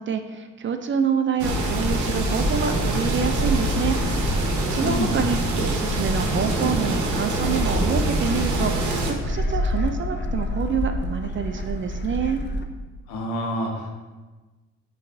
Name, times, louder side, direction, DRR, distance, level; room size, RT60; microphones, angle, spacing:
voice 1, 0.0-4.0 4.7-5.4 5.6-12.4, right 7 dB, 35° right, 7 dB, 0.4 m, -27 dB
Gull seagull, 1.4-12.6, left 1 dB, 30° left, 0.5 m, -29 dB
sound 1, 1.4-9.1, right 2 dB, 50° right, 0.9 m, -26 dB
voice 2, 4.7-5.1 13.1-13.9, left 1 dB, 75° left, 1 dB, 1.0 m, -27 dB
sound 2, 5.9-12.6, equal, 5° left, 0.8 m, -39 dB
6.4 x 3.1 x 2.6 m, 1.3 s
hypercardioid pair, 55°, 37 cm